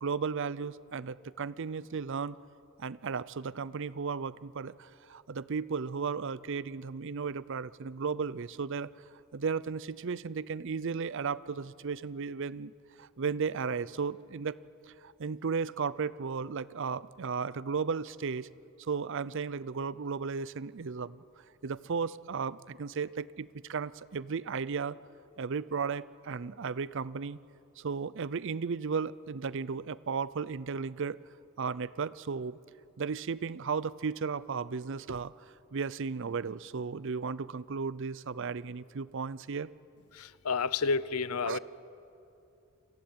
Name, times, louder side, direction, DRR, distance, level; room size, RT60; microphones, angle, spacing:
voice 1, 0.0-2.4 2.8-8.9 9.3-12.7 13.0-14.6 14.8-18.5 18.8-25.0 25.4-27.4 27.8-31.2 31.6-32.6 33.0-35.3 35.7-39.7 41.4-41.6, right 5 dB, 60° right, 19 dB, 0.5 m, -35 dB
voice 2, 40.1-41.6, left 4 dB, 85° left, 18 dB, 0.7 m, -30 dB
29.0 x 22.5 x 8.7 m, 2.7 s
head